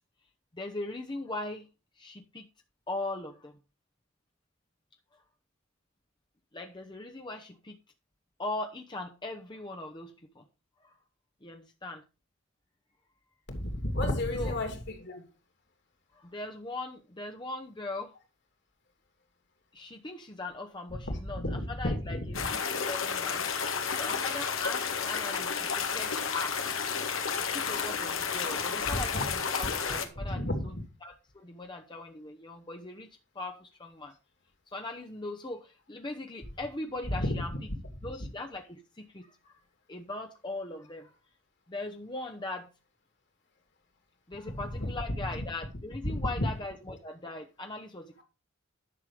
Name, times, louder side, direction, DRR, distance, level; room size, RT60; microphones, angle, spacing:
voice 1, 0.5-1.7 2.0-2.5 2.9-3.5 6.5-7.8 8.4-10.4 10.8-10.9 11.4-12.0 14.4-14.5 16.1-18.2 19.7-23.5 24.0-26.6 27.5-30.7 31.0-33.1 33.3-34.1 34.7-37.5 38.0-39.5 39.9-41.1 41.7-42.7 44.3-48.2, left 2 dB, 25° left, 0.9 m, -40 dB
voice 2, 13.5-15.2 21.0-22.5 28.9-29.2 29.9-30.9 37.1-37.6 44.5-45.4 46.0-46.5, left 1 dB, 60° left, 3.0 m, -33 dB
sound 1, 22.3-30.1, left 6 dB, 85° left, 1.8 m, -31 dB
11.0 x 6.7 x 4.9 m
head